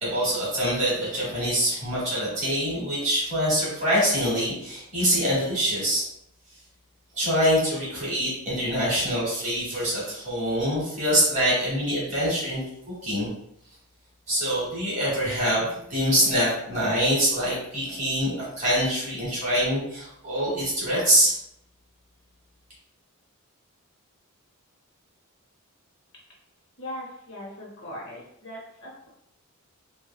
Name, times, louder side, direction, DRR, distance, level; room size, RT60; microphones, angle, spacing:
voice 1, 0.0-6.0 7.1-13.3 14.3-21.3, equal, 35° right, -7 dB, 1.3 m, -25 dB
voice 2, 26.8-29.1, left 1 dB, 55° left, -4 dB, 0.8 m, -39 dB
3.2 x 2.1 x 2.3 m, 0.74 s
head